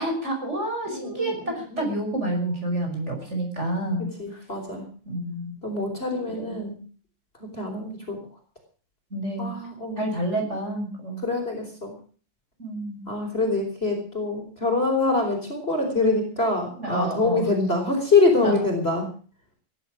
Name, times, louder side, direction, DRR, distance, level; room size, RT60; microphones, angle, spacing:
voice 1, 0.0-4.4 5.1-5.6 6.4-6.5 9.1-9.5 10.0-11.2 12.6-13.1 16.8-17.5 18.4-18.5, right 1 dB, 35° right, 2 dB, 6.1 m, -29 dB
voice 2, 0.8-2.0 4.0-4.9 5.6-6.8 7.4-8.2 9.4-10.0 11.2-11.9 13.1-19.1, left 3 dB, 30° left, 3 dB, 4.7 m, -25 dB
18.0 x 11.5 x 6.3 m, 0.41 s
omnidirectional pair, 2.2 m